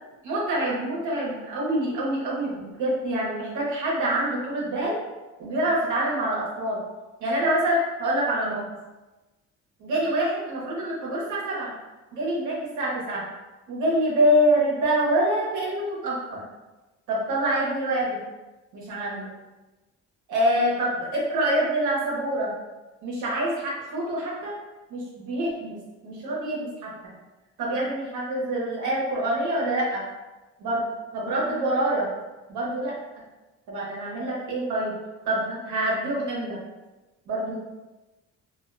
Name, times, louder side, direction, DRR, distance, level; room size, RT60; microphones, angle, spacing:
voice 1, 0.2-4.9 5.4-6.8 7.2-8.6 9.8-11.7 12.1-13.2 13.7-16.4 17.1-18.2 18.7-19.3 20.3-22.5 23.0-24.5 24.9-25.8 26.0-26.9 27.6-30.0 30.6-30.9 31.1-32.1 32.5-32.9 33.7-35.0 35.2-36.6 37.3-37.6, right 1 dB, 80° right, -5 dB, 0.9 m, -26 dB
2.4 x 2.2 x 2.5 m, 1.1 s
cardioid pair, 90°, 30 cm